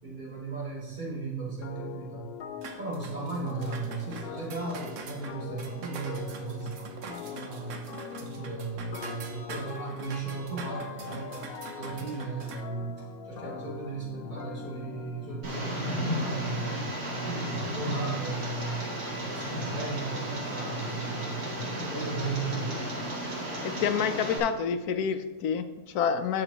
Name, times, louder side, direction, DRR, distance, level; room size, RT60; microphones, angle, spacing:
voice 1, 0.0-2.3 2.8-7.8 8.2-11.5 11.7-16.7 17.0-18.8 19.1-22.9, right 3 dB, 30° right, -8 dB, 3.0 m, -36 dB
sound 1, 1.6-16.2, left 8 dB, 60° left, 0.6 m, -43 dB
sound 2, 2.6-12.6, right 5 dB, 60° right, 1.1 m, -44 dB
Tick, 15.4-24.4, equal, 90° right, 3.0 m, -34 dB
voice 2, 23.6-26.4, left 7 dB, 85° left, 9 dB, 1.1 m, -28 dB
11.5 x 6.8 x 2.9 m, 1.2 s
omnidirectional pair, 1.6 m